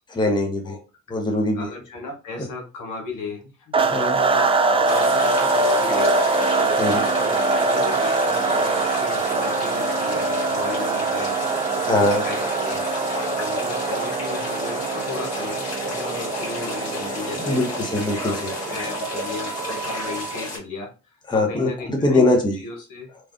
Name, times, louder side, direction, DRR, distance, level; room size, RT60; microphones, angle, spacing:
voice 1, 0.1-0.7 1.1-1.7 3.9-4.2 6.8-7.0 11.9-12.2 17.4-18.5 21.3-22.6, left 2 dB, 15° left, 2 dB, 0.9 m, -21 dB
voice 2, 1.5-11.4 11.7-12.8 13.4-17.6 18.1-22.3 22.6-23.1, left 4 dB, 65° left, 1 dB, 1.3 m, -35 dB
sound 1, 3.7-20.4, right 3 dB, 15° right, 0.4 m, -23 dB
sound 2, 4.8-20.6, left 1 dB, 45° left, 1.8 m, -32 dB
3.1 x 2.4 x 2.5 m, 0.31 s
hypercardioid pair, 55°, 35 cm